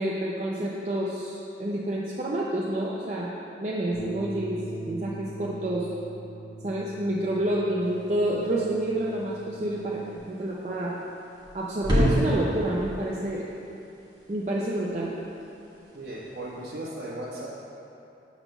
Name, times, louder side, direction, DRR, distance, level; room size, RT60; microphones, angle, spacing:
voice 1, 0.0-3.3 3.6-5.9 6.6-10.9 11.5-13.5 14.3-15.1, right 1 dB, 40° right, -5 dB, 0.5 m, -28 dB
Bass guitar, 3.9-10.2, right 2 dB, 65° left, 0.9 m, -41 dB
sound 1, 7.8-16.7, equal, 25° right, 1.2 m, -33 dB
voice 2, 15.9-17.5, right 1 dB, 65° right, -6 dB, 1.5 m, -36 dB
6.6 x 4.0 x 6.0 m, 2.8 s
head